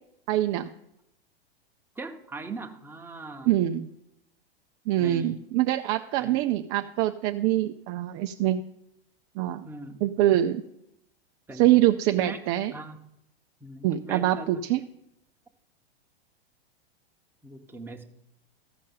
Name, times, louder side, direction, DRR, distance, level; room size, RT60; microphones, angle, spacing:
voice 1, 0.3-0.7 3.4-3.9 4.9-8.6 9.4-9.7 10.0-10.6 11.5-12.7 13.8-14.8, right 13 dB, 40° right, 7 dB, 0.5 m, -24 dB
voice 2, 2.0-3.5 5.0-5.4 6.2-6.4 9.6-10.0 11.5-11.8 12.2-12.4 12.7-13.0 13.6-14.5 17.4-18.0, right 3 dB, 5° right, 2 dB, 1.1 m, -40 dB
14.5 x 5.3 x 5.5 m, 0.81 s
hypercardioid pair, 110°, 31 cm